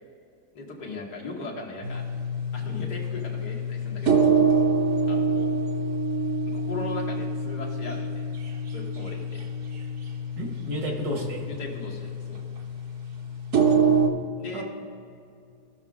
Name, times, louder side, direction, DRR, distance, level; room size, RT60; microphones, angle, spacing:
voice 1, 0.5-2.0 2.5-4.3 5.1-5.5 6.5-8.3 8.7-9.5 11.4-12.4 14.4-14.6, left 2 dB, 90° left, -2 dB, 2.2 m, -38 dB
sound 1, 1.8-14.1, right 3 dB, 50° right, 1.1 m, -26 dB
voice 2, 10.4-11.4 14.5-14.6, equal, 70° right, 0 dB, 2.3 m, -31 dB
17.5 x 6.2 x 3.6 m, 2.4 s
omnidirectional pair, 1.7 m